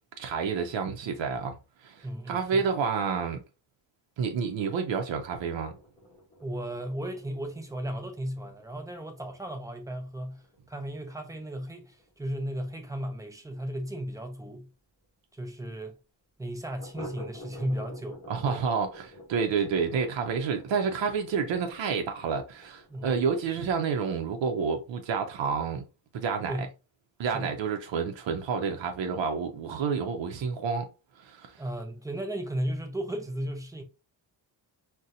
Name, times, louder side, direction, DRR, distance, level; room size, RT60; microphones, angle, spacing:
voice 1, 0.2-3.4 4.2-5.7 18.3-25.8 26.1-26.5 27.2-30.9 31.2-31.6, right 5 dB, 85° right, 0.6 m, -29 dB
voice 2, 2.0-2.6 6.4-10.4 10.7-14.7 15.3-15.9 16.4-18.2 18.4-18.6 22.9-23.2 26.5-26.7 27.2-27.5 31.6-33.8, right 1 dB, 10° right, 0.4 m, -35 dB
sound 1, 5.0-14.3 14.6-14.7 15.0-15.1 15.5-15.6 16.8-23.5, equal, 15° left, 1.0 m, -50 dB
4.1 x 2.2 x 2.5 m
wide cardioid pair, 170°, 43 cm